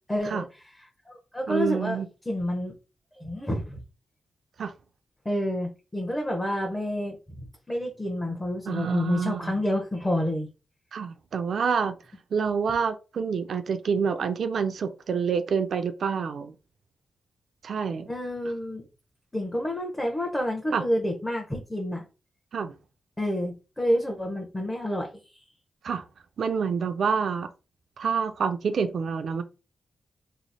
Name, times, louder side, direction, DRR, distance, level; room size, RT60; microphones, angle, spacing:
voice 1, 0.1-0.4 1.1-2.0 2.3-2.8 3.2-3.8 5.2-7.4 7.7-10.5 18.1-18.8 19.3-22.0 23.2-25.4, left 1 dB, 15° left, 0.9 m, -29 dB
voice 2, 1.5-2.1 4.6-4.7 8.6-9.6 10.9-12.0 12.3-16.6 17.6-18.1 20.7-20.8 22.5-22.7 25.8-26.0 26.4-27.5 28.0-29.4, right 6 dB, 75° right, 0.4 m, -27 dB
3.1 x 2.0 x 4.0 m
cardioid pair, 60°, 0 cm